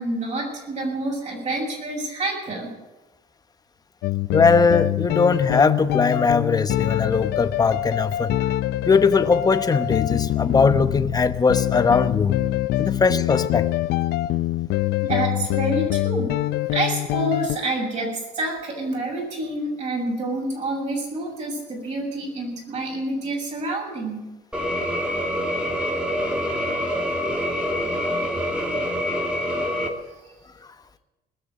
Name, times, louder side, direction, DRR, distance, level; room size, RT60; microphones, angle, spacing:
voice 1, 0.0-2.7 15.0-16.4 16.7-24.2, right 2 dB, 45° right, -2 dB, 7.1 m, -28 dB
sound 1, 4.0-17.6, left 15 dB, 75° left, 0.6 m, -24 dB
voice 2, 4.3-8.3 8.8-12.4 12.8-13.7, left 4 dB, 20° left, 10 dB, 0.9 m, -20 dB
sound 2, 24.5-29.9, equal, 5° right, 2.5 m, -25 dB
20.5 x 6.9 x 9.5 m, 1.1 s
cardioid pair, 110°, 17 cm